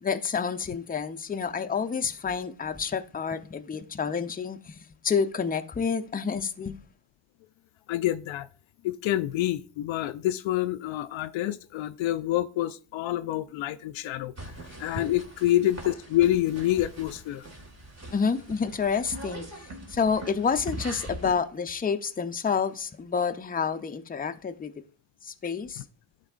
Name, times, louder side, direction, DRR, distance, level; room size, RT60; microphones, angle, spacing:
voice 1, 0.0-6.8 18.1-19.4 19.9-24.7 25.2-25.8, left 6 dB, 20° left, 0.6 m, -29 dB
voice 2, 7.9-8.5 8.8-14.3 14.8-17.4, left 13 dB, 70° left, 0.5 m, -27 dB
sound 1, 14.4-21.3, right 1 dB, 30° right, 1.8 m, -41 dB
11.0 x 4.1 x 2.4 m
supercardioid pair, 55°, 49 cm